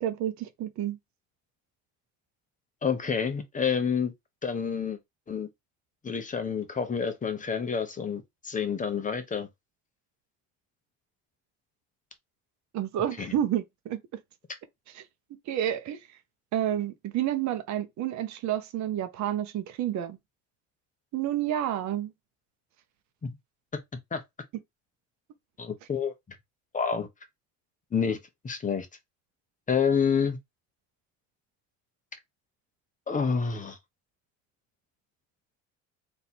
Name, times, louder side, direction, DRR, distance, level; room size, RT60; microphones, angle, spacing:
voice 1, 0.0-1.0 12.7-14.0 14.9-15.0 15.5-16.0 16.5-20.2 21.1-22.1, right 11 dB, 55° right, 0.9 m, -30 dB
voice 2, 2.8-4.1 4.4-5.0 5.3-5.5 6.0-9.5 13.2-13.3 23.2-23.3 24.1-24.2 25.6-26.1 26.7-27.1 27.9-28.2 28.4-28.9 29.7-30.4 33.1-33.8, left 6 dB, 25° left, 1.0 m, -28 dB
3.3 x 2.8 x 4.3 m
supercardioid pair, 110°, 33 cm